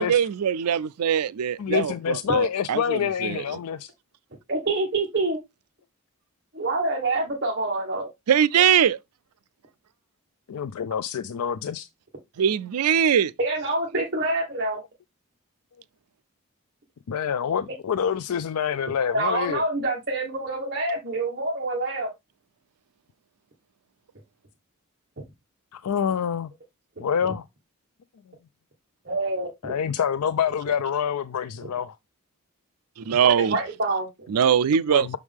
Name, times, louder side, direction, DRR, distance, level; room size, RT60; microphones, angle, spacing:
voice 1, 0.0-3.4 8.3-9.0 12.4-13.3 33.0-33.6 34.3-35.2, right 8 dB, 90° right, 0.4 m, -22 dB
voice 2, 1.6-3.9 10.5-11.9 17.1-19.6 25.7-26.5 27.0-27.4 29.6-32.0 34.9-35.2, left 7 dB, 85° left, 0.4 m, -26 dB
voice 3, 4.5-5.4 6.5-8.1 13.4-14.8 19.1-22.1 27.2-27.3 29.0-29.7 33.2-34.3, right 2 dB, 45° right, 1.5 m, -26 dB
6.3 x 4.8 x 3.5 m
head